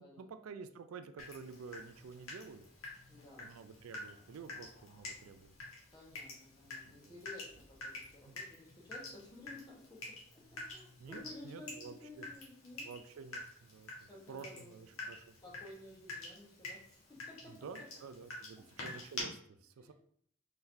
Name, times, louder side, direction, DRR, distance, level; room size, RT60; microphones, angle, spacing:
voice 1, 0.0-2.6 3.4-5.6 6.8-7.2 8.3-8.4 11.0-12.3 12.8-15.4 17.5-19.9, right 5 dB, 90° right, 10 dB, 0.4 m, -50 dB
Water tap faucet / Drip, 1.2-19.2, left 2 dB, 85° left, 1.4 m, -49 dB
voice 2, 3.1-3.5 5.9-12.9 14.0-15.1 15.4-17.9 18.6-18.7 19.8-19.9, left 2 dB, 20° left, -3 dB, 1.0 m, -54 dB
4.3 x 3.9 x 2.6 m, 0.64 s
head